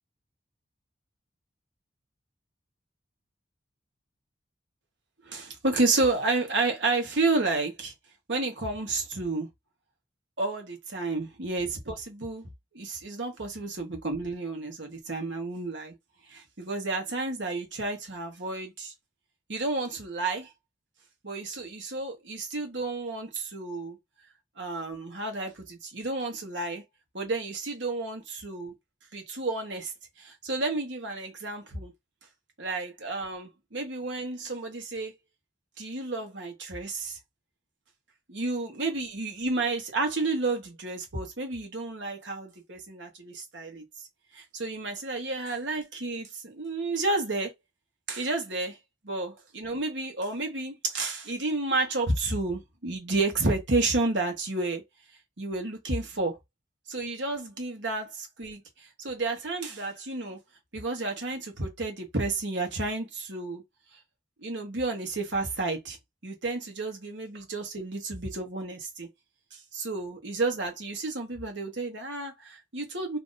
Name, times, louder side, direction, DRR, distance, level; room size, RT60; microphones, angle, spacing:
voice 1, 5.2-7.9 8.3-9.5 10.4-12.5 12.7-15.9 16.3-18.9 19.5-20.5 21.2-24.0 24.6-26.8 27.1-28.7 29.1-29.9 30.2-31.9 32.6-35.1 35.8-37.2 38.3-43.8 44.3-47.5 48.1-48.8 49.0-54.8 55.4-56.4 56.9-58.6 59.0-60.4 60.7-63.6 64.4-66.0 66.2-69.1 69.5-73.2, right 3 dB, 70° right, 1.3 m, -31 dB
2.9 x 2.6 x 3.9 m
head